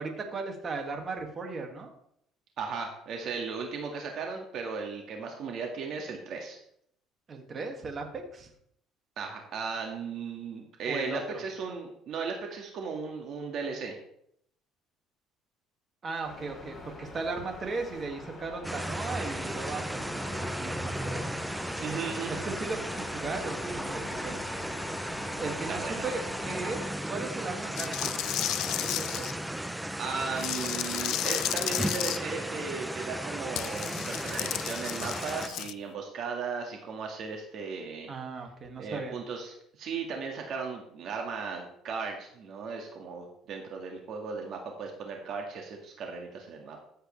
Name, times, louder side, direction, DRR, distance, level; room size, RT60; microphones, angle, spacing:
voice 1, 0.0-1.9 7.3-8.5 10.9-11.4 16.0-21.2 22.3-24.4 25.4-28.1 28.8-29.3 38.1-39.2, right 3 dB, 35° right, 3 dB, 2.1 m, -37 dB
voice 2, 2.6-6.6 9.2-14.0 21.8-22.3 25.7-26.2 30.0-38.1 38.8-46.8, right 5 dB, 55° right, 2 dB, 1.8 m, -36 dB
sound 1, 16.2-26.9, left 2 dB, 20° left, 3.6 m, -43 dB
sound 2, 18.6-35.5, right 1 dB, 5° right, 0.6 m, -35 dB
sound 3, 27.8-29.3 30.4-32.2 33.6-35.7, left 14 dB, 70° left, 0.4 m, -33 dB
14.0 x 8.0 x 3.3 m, 0.71 s
cardioid pair, 120°, 0 cm